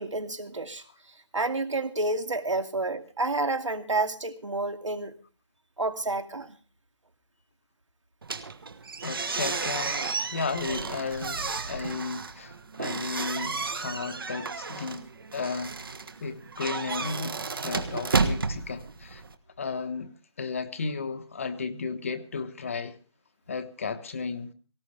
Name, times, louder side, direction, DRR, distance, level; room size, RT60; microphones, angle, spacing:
voice 1, 0.0-5.1 5.8-6.6, right 2 dB, 75° right, 2.5 m, -30 dB
sound 1, 8.2-19.3, right 4 dB, 45° right, 1.4 m, -32 dB
voice 2, 9.0-15.8 16.2-19.2 19.6-20.1 20.4-23.0 23.5-24.5, left 4 dB, 25° left, 1.1 m, -34 dB
19.0 x 17.5 x 3.3 m
figure-of-eight pair, 165°, 16 cm